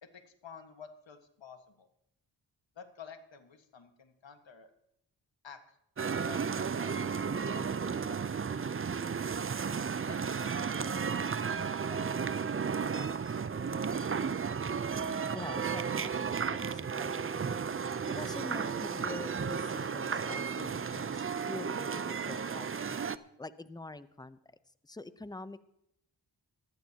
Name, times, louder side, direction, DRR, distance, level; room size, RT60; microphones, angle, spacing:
voice 1, 0.0-1.9 2.7-4.7 5.4-5.8 6.1-8.7 10.1-13.4, left 6 dB, 70° left, 7 dB, 1.7 m, -52 dB
sound 1, 6.0-23.2, right 6 dB, 30° right, 0.5 m, -34 dB
voice 2, 15.0-23.0 23.4-24.4 24.8-25.7, left 2 dB, 10° left, 14 dB, 0.7 m, -46 dB
19.5 x 13.5 x 2.9 m, 0.78 s
cardioid pair, 55°, 47 cm